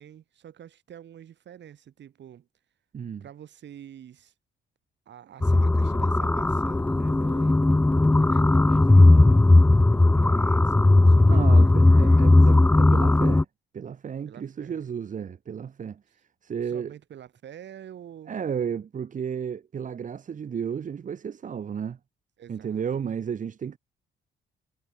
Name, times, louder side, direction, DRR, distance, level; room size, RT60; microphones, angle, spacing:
voice 1, 0.0-2.5 3.2-4.3 5.1-7.6 8.2-12.6 14.3-14.9 16.6-18.3 22.4-23.0, right 10 dB, 65° right, 3.7 m, -47 dB
voice 2, 2.9-3.2 11.3-13.5 13.7-16.0 16.4-16.9 18.3-22.0 22.5-23.8, right 7 dB, 40° right, 0.9 m, -33 dB
sound 1, 5.4-13.4, left 2 dB, 10° left, 0.5 m, -17 dB
cardioid pair, 90°, 20 cm